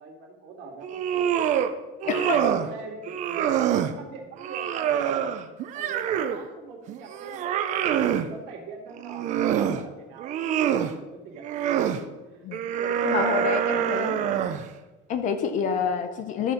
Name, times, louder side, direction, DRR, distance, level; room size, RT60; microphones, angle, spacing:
voice 1, 0.0-1.5 2.0-5.4 5.7-7.4 7.8-11.8 12.2-14.4, right 4 dB, 60° right, 2.2 m, -42 dB
sound 1, 0.8-1.7 2.0-2.7 3.1-3.9 4.4-6.4 6.9-8.3 8.9-9.8 10.2-10.9 11.4-12.0 12.5-14.7, right 9 dB, 35° right, 0.5 m, -26 dB
voice 2, 2.1-2.5 12.4-12.6 13.0-14.2 15.1-16.5, left 6 dB, 35° left, 0.6 m, -27 dB
12.5 x 4.3 x 5.1 m
cardioid pair, 180°, 21 cm